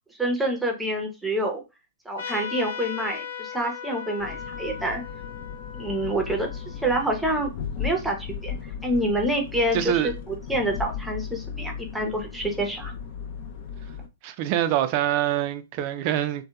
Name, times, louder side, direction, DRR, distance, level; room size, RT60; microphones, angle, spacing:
voice 1, 0.2-1.6 2.1-5.0 5.7-7.5 7.8-8.6 8.8-12.9, right 1 dB, 5° right, 0.6 m, -27 dB
Trumpet, 2.2-7.3, left 6 dB, 80° left, 0.8 m, -38 dB
sound 1, 4.2-14.1, left 7 dB, 50° left, 0.4 m, -36 dB
voice 2, 9.7-10.1 14.2-16.4, right 11 dB, 45° right, 0.3 m, -25 dB
2.8 x 2.1 x 2.2 m
hypercardioid pair, 120°, 0 cm